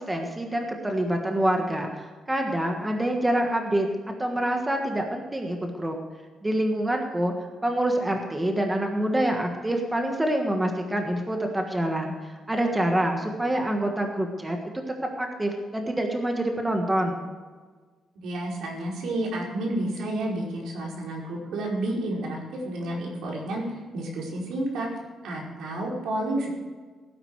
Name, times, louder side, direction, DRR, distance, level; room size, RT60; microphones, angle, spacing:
voice 1, 0.0-3.9 4.2-6.0 6.4-7.3 7.6-14.6 15.2-17.2, right 1 dB, 10° right, 2 dB, 1.5 m, -26 dB
voice 2, 18.2-24.9 25.2-26.5, right 1 dB, 80° right, -2 dB, 5.1 m, -30 dB
17.0 x 10.0 x 4.8 m, 1.4 s
cardioid pair, 170°, 0 cm